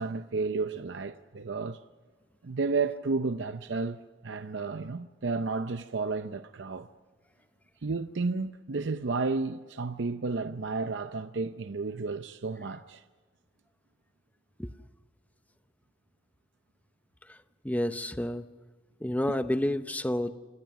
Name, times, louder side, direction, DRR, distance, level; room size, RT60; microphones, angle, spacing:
voice 1, 0.0-1.8 2.4-6.9 7.8-13.0, right 4 dB, 65° right, 0.6 m, -32 dB
voice 2, 17.6-18.5 19.0-20.3, left 1 dB, 10° left, 0.8 m, -29 dB
27.5 x 18.5 x 6.0 m
head